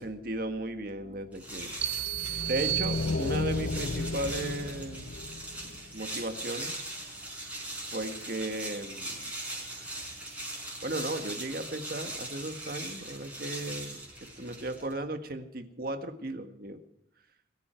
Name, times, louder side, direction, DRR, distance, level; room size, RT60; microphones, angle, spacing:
voice 1, 0.0-1.7 2.5-5.1 5.6-6.7 7.9-9.2 10.8-14.0 14.4-16.8, right 1 dB, 50° right, 8 dB, 1.7 m, -36 dB
sound 1, 1.3-15.0, right 1 dB, 10° right, 5.1 m, -40 dB
sound 2, 1.8-6.2, left 3 dB, 70° left, 0.7 m, -34 dB
sound 3, 1.8-3.7, right 16 dB, 75° right, 1.2 m, -33 dB
22.0 x 14.5 x 4.5 m, 0.77 s
head